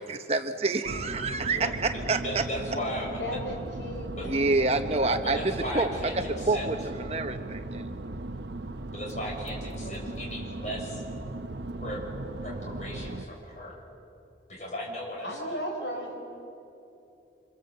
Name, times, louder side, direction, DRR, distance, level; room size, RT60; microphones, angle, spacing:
voice 1, 0.0-2.4 4.3-5.9 6.1-7.8, right 3 dB, 35° right, 7 dB, 1.1 m, -28 dB
sound 1, 0.8-13.3, right 2 dB, 75° right, 0.9 m, -37 dB
voice 2, 2.2-3.2 4.1-4.3 5.0-6.7 8.9-11.0 11.8-12.0 12.4-13.8 14.5-15.5, equal, 40° left, -2 dB, 6.9 m, -37 dB
voice 3, 3.2-5.1 9.8-10.1 15.2-16.2, equal, 80° left, 3 dB, 4.6 m, -36 dB
26.5 x 26.5 x 7.9 m, 2.8 s
head